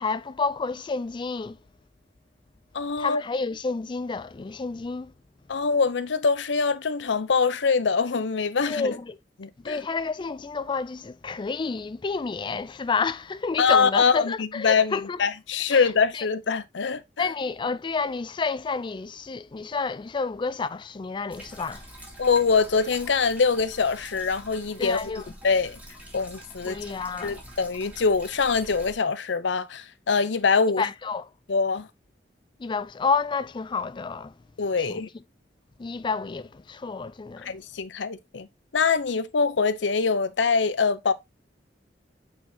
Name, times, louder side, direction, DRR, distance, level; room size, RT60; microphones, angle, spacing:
voice 1, 0.0-1.6 3.0-5.1 8.6-9.2 9.6-15.2 15.7-16.3 17.2-21.8 24.8-25.2 26.6-27.4 30.8-31.3 32.6-34.3 34.9-35.0 35.8-37.5, left 4 dB, 25° left, 0.4 m, -30 dB
voice 2, 2.7-3.2 5.5-9.0 9.4-9.8 13.6-17.0 22.2-25.1 25.4-25.8 26.1-26.8 27.2-30.9 31.5-31.9 34.6-35.1 37.4-38.5 38.7-41.1, left 5 dB, 80° left, 0.7 m, -24 dB
sound 1, 21.3-28.9, right 1 dB, 10° right, 2.2 m, -45 dB
8.4 x 4.4 x 2.8 m
head